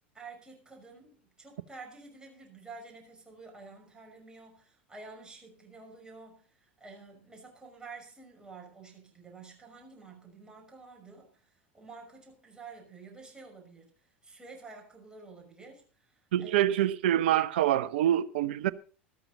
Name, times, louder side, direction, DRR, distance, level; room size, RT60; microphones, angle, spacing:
voice 1, 0.1-16.7, right 4 dB, 15° right, 5.8 m, -50 dB
voice 2, 16.3-18.7, right 12 dB, 70° right, 0.7 m, -26 dB
13.5 x 13.5 x 4.1 m
hypercardioid pair, 80°, 6 cm